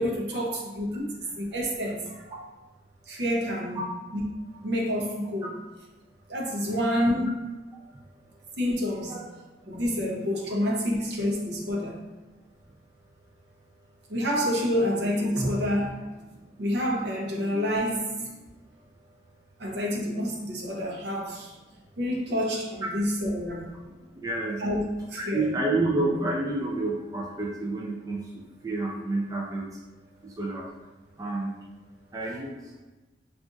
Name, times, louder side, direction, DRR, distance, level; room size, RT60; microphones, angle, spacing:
voice 1, 0.0-2.5 3.1-3.8 4.1-4.2 4.5-5.5 6.3-7.2 8.6-9.2 9.7-12.0 14.1-16.0 16.6-18.3 19.6-21.6 22.0-23.7 24.6-24.8 25.1-25.5, equal, 65° right, -1 dB, 0.7 m, -28 dB
voice 2, 23.9-24.6 25.2-29.8 30.2-30.9 31.2-31.6 32.1-32.8, right 2 dB, 20° right, -3 dB, 0.3 m, -30 dB
3.9 x 2.4 x 2.5 m, 1.2 s
head